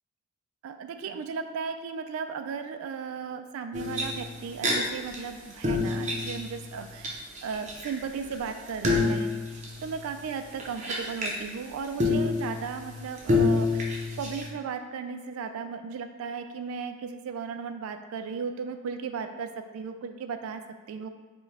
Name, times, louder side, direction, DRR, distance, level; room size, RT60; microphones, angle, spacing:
voice 1, 0.6-13.8 14.2-20.6 20.9-21.1, right 5 dB, 85° right, 10 dB, 0.3 m, -36 dB
sound 1, 3.7-4.7 5.1-5.2 5.5-7.1 7.4-11.4 12.0-14.5, left 3 dB, 35° right, 0.6 m, -28 dB
4.4 x 2.2 x 3.4 m, 1.4 s
head